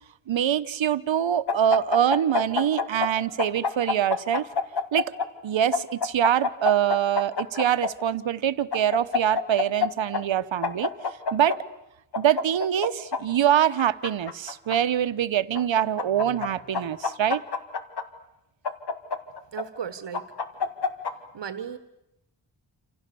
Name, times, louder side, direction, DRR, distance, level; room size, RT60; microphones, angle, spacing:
voice 1, 0.3-4.5 4.9-5.1 5.4-10.9 11.3-11.6 12.2-17.4, right 10 dB, 85° right, 13 dB, 1.0 m, -24 dB
sound 1, 1.5-3.1 3.4-5.3 5.7-7.9 8.7-9.9 10.1-10.2 10.6-11.6 12.1-13.2 13.8-14.8 15.5-16.5 16.7-18.0 18.6-19.6 20.1-21.1, left 5 dB, 60° left, 2.0 m, -26 dB
voice 2, 19.5-20.3 21.3-21.8, right 8 dB, 70° right, 10 dB, 1.4 m, -35 dB
28.0 x 27.5 x 7.0 m, 0.89 s
wide cardioid pair, 125°, 45 cm